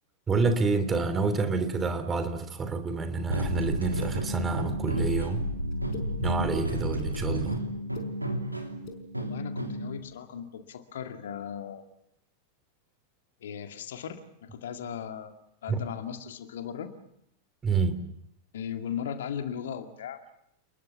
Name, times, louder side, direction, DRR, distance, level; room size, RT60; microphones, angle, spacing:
voice 1, 0.3-5.4 6.2-7.6 15.7-15.8 17.6-18.0, right 4 dB, 20° right, 9 dB, 3.1 m, -28 dB
sound 1, 3.3-10.0, equal, 85° right, 3.1 m, -31 dB
sound 2, 4.0-4.1 5.0-5.1 5.7-6.1 6.7-7.1 7.8-8.1 8.8-9.0, left 7 dB, 45° left, 4.8 m, -42 dB
voice 2, 9.1-11.8 13.4-15.3 15.6-16.9 18.5-20.2, left 8 dB, 60° left, 7 dB, 2.2 m, -37 dB
29.5 x 21.0 x 7.3 m, 0.75 s
figure-of-eight pair, 90°, 0 cm